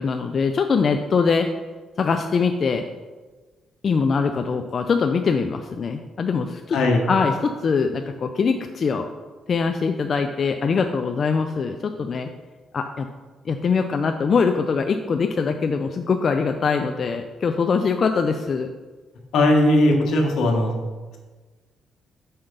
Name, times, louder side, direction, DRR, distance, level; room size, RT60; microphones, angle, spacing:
voice 1, 0.0-1.5 2.0-2.8 3.8-6.8 7.1-9.1 9.5-12.3 12.7-13.1 13.5-18.7, left 5 dB, 45° left, 5 dB, 0.4 m, -22 dB
voice 2, 6.7-7.0 19.3-20.8, left 1 dB, 75° left, 2 dB, 1.1 m, -18 dB
5.6 x 4.4 x 5.2 m, 1.3 s
cardioid pair, 90°, 0 cm